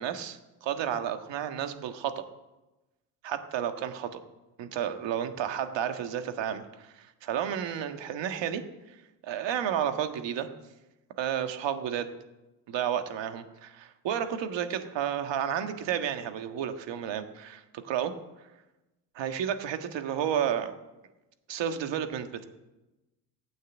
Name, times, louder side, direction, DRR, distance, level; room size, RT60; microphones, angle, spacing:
voice 1, 0.0-2.2 3.2-4.2 4.6-9.0 9.2-10.5 11.2-12.1 12.7-18.1 19.2-20.7 21.5-22.4, right 9 dB, 70° right, 8 dB, 1.7 m, -32 dB
15.5 x 9.1 x 8.2 m, 1.0 s
supercardioid pair, 65°, 45 cm